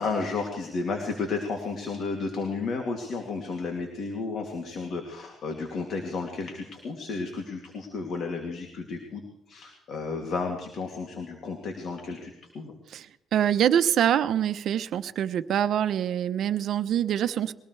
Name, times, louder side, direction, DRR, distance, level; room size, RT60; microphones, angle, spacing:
voice 1, 0.0-12.7, left 4 dB, 65° left, 2 dB, 2.7 m, -32 dB
voice 2, 13.3-17.5, right 10 dB, 70° right, 11 dB, 0.8 m, -25 dB
23.0 x 18.5 x 3.4 m, 0.84 s
cardioid pair, 90°, 0 cm